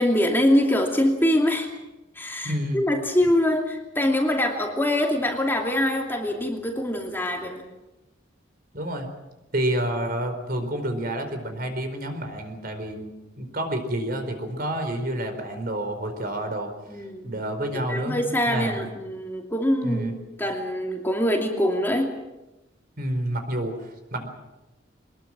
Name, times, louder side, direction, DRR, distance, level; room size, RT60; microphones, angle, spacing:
voice 1, 0.0-1.7 2.2-7.6 16.9-17.3 17.7-20.1 20.4-22.1, left 1 dB, 10° left, 1 dB, 2.7 m, -24 dB
voice 2, 2.4-2.8 8.7-9.1 9.5-16.7 17.2-18.8 19.8-20.1 23.0-24.3, right 1 dB, 50° right, 6 dB, 4.5 m, -29 dB
24.0 x 21.0 x 7.5 m, 1.0 s
head